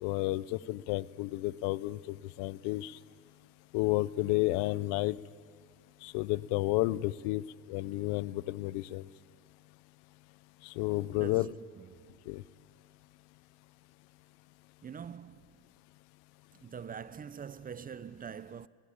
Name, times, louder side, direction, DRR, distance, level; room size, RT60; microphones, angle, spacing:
voice 1, 0.0-3.0 3.7-5.2 6.0-9.1 10.6-11.5 12.3-12.4, left 19 dB, 90° left, 0.6 m, -31 dB
voice 2, 11.1-12.3 14.8-15.6 16.5-18.7, right 7 dB, 25° right, 0.4 m, -45 dB
20.5 x 16.5 x 8.7 m
cardioid pair, 110°, 38 cm